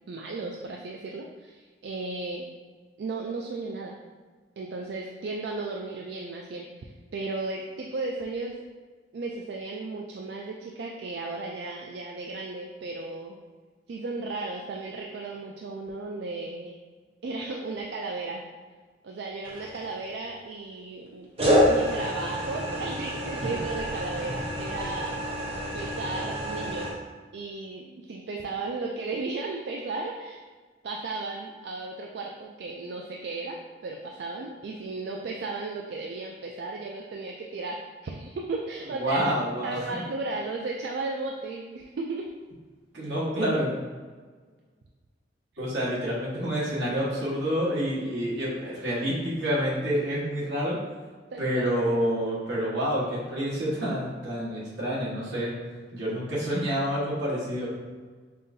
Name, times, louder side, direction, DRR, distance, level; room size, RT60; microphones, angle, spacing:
voice 1, 0.1-2.5 3.0-4.0 4.6-8.6 9.1-13.4 13.9-16.8 17.2-18.4 19.0-21.3 21.6-25.2 25.7-27.0 27.3-30.4 30.8-39.3 39.6-42.3 43.0-43.1 51.3-51.7, right 3 dB, 65° right, 0 dB, 0.3 m, -35 dB
sound 1, 19.4-20.1 21.4-26.9, equal, 35° right, 0.7 m, -28 dB
voice 2, 39.0-40.0 42.9-43.7 45.6-50.8 51.4-55.5 55.9-57.7, equal, 85° right, -7 dB, 1.4 m, -28 dB
5.5 x 2.6 x 2.6 m, 1.4 s
head